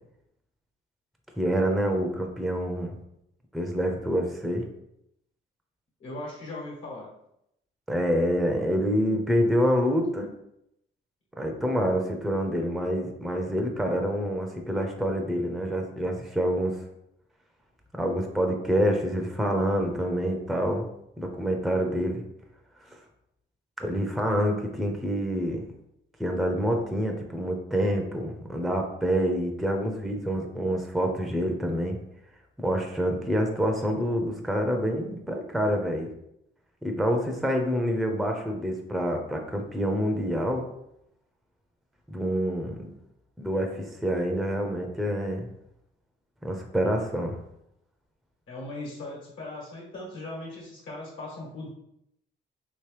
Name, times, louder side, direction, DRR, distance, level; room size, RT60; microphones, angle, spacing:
voice 1, 1.4-2.9 3.5-4.6 7.9-10.3 11.4-16.8 17.9-20.9 21.2-22.2 23.8-25.6 26.2-32.0 32.6-36.1 36.8-40.6 42.1-42.9 43.4-45.5 46.4-47.4, equal, ahead, 2 dB, 0.5 m, -27 dB
voice 2, 6.0-7.1 48.5-51.7, left 2 dB, 70° left, -3 dB, 1.4 m, -38 dB
3.0 x 3.0 x 3.2 m, 0.79 s
cardioid pair, 90°, 20 cm